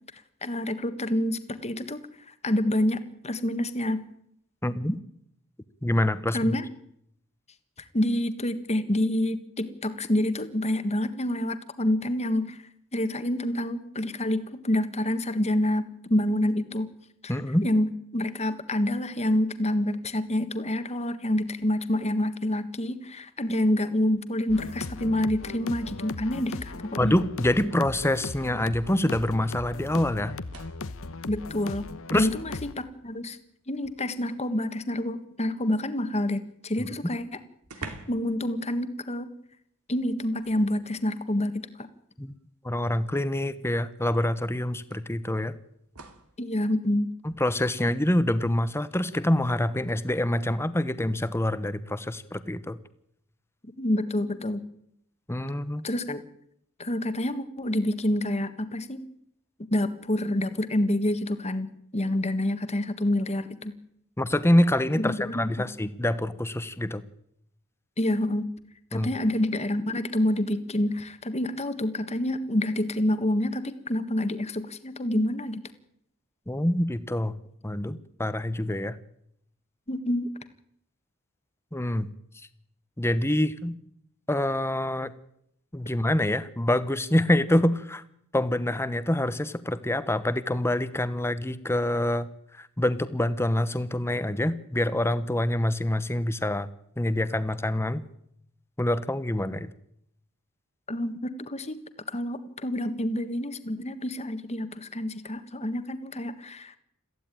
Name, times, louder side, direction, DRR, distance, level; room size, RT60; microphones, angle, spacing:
voice 1, 0.4-2.0 2.3-4.0 6.3-6.7 7.9-12.6 12.9-16.9 17.2-17.4 17.6-27.1 31.3-31.8 32.1-33.4 33.7-37.4 37.8-39.3 39.9-41.9 46.4-47.1 53.8-54.6 55.8-56.2 56.8-59.0 59.7-63.7 65.0-65.7 68.0-68.5 68.9-75.6 79.9-80.3 100.9-101.8 102.1-106.8, left 1 dB, 30° left, 10 dB, 1.6 m, -27 dB
voice 2, 4.6-5.0 5.8-6.5 17.3-17.6 27.0-30.3 32.1-32.3 36.8-36.9 42.2-42.3 42.6-45.5 47.2-52.8 55.3-55.8 64.2-67.0 68.9-69.1 76.5-77.3 77.6-79.0 81.7-82.1 83.0-83.7 84.3-85.1 85.7-88.0 88.3-92.3 92.5-96.7 97.0-98.0 98.8-99.7, left 1 dB, 10° left, 13 dB, 1.1 m, -26 dB
sound 1, 24.5-32.7, left 3 dB, 65° left, 1.1 m, -38 dB
sound 2, 30.3-31.0 32.4-32.5 32.9-34.5 36.6-36.7 37.0-37.1 37.6-38.4 38.6-38.9 40.4-41.1 42.3-42.4 43.9-44.0 44.9-46.4 49.7-50.0, right 3 dB, 85° right, 2.6 m, -47 dB
22.5 x 15.0 x 9.2 m, 0.75 s
head